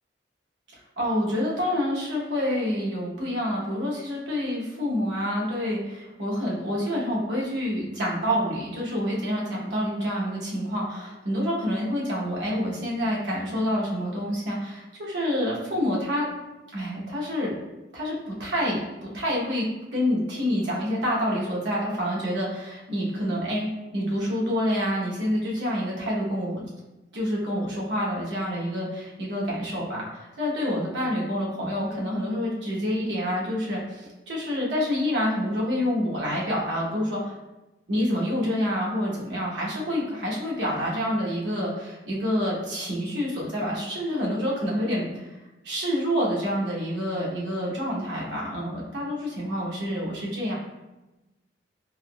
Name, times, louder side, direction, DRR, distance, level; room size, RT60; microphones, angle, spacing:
voice 1, 1.0-16.3 16.7-17.5 17.9-19.6 19.9-23.7 23.9-26.6 27.1-37.3 37.9-45.3 45.6-50.5, equal, 80° right, -5 dB, 1.0 m, -27 dB
3.5 x 2.9 x 2.3 m, 1.0 s
head